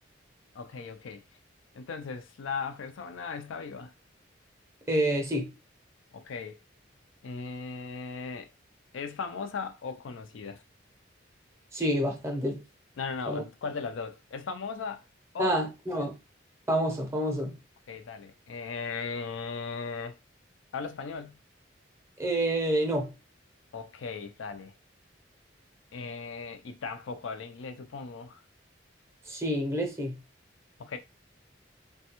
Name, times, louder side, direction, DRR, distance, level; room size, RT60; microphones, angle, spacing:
voice 1, 0.5-1.2 1.7-3.9 6.1-6.6 7.2-8.5 8.9-10.6 13.0-15.0 15.3-15.6 16.0-16.1 17.9-20.2 20.7-21.4 23.7-24.7 25.9-28.4 30.8-31.0, left 5 dB, 80° left, 0.4 m, -37 dB
voice 2, 4.9-5.5 11.7-12.6 13.3-13.4 15.4-16.1 16.7-17.6 22.2-23.1 29.3-30.2, right 1 dB, 15° right, 0.6 m, -28 dB
3.2 x 2.2 x 2.9 m
head